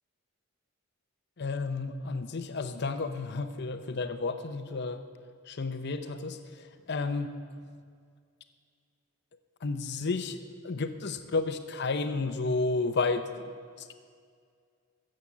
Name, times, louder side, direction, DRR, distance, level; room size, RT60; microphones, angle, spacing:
voice 1, 1.4-5.0 5.5-7.4 9.6-13.9, left 3 dB, 50° left, 9 dB, 0.6 m, -32 dB
14.0 x 7.6 x 7.1 m, 2.1 s
head